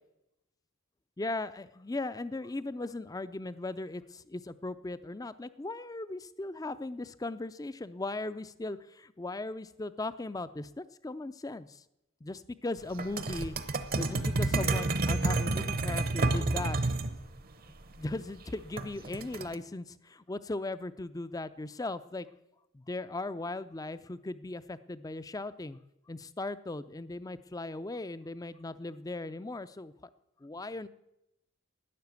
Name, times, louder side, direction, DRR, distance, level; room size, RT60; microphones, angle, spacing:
voice 1, 1.2-11.8 12.2-13.5 14.0-16.8 17.9-22.3 22.7-25.8 26.1-29.9 30.4-30.9, left 2 dB, 15° left, 14 dB, 0.4 m, -38 dB
sound 1, 13.0-17.1 18.8-19.5, right 2 dB, 45° right, 0.8 m, -29 dB
12.0 x 9.8 x 8.1 m, 0.88 s
head